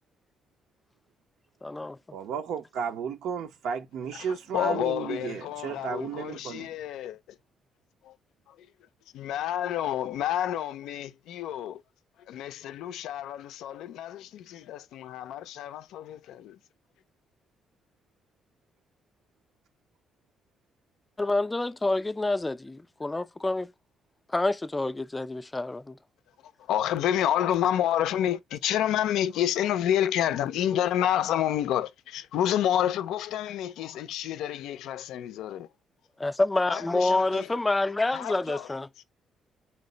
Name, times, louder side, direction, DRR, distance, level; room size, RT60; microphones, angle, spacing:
voice 1, 1.6-2.0 21.2-23.7 24.3-26.0 36.2-38.9, left 2 dB, 15° left, 0.3 m, -27 dB
voice 2, 2.1-6.8, right 7 dB, 80° right, 0.6 m, -33 dB
voice 3, 4.5-7.2 8.0-8.1 8.5-8.6 9.1-11.8 12.3-16.6 26.7-35.7 36.7-37.5 38.1-38.8, left 11 dB, 85° left, 0.4 m, -29 dB
4.4 x 2.1 x 3.8 m
cardioid pair, 90°, 0 cm